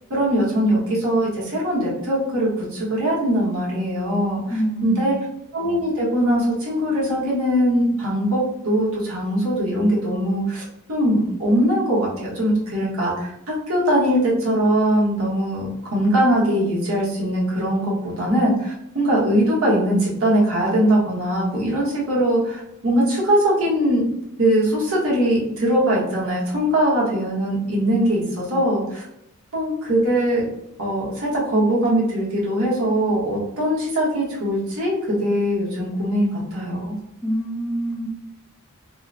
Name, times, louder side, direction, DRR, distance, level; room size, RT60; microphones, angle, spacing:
voice 1, 0.1-4.6 4.8-5.1 5.5-10.6 10.9-24.0 24.4-29.0 29.5-30.5 30.8-37.0, equal, 75° right, -5 dB, 1.0 m, -21 dB
voice 2, 4.5-5.2 37.2-38.1, right 1 dB, 5° left, -2 dB, 0.4 m, -26 dB
2.9 x 2.0 x 2.4 m, 0.81 s
head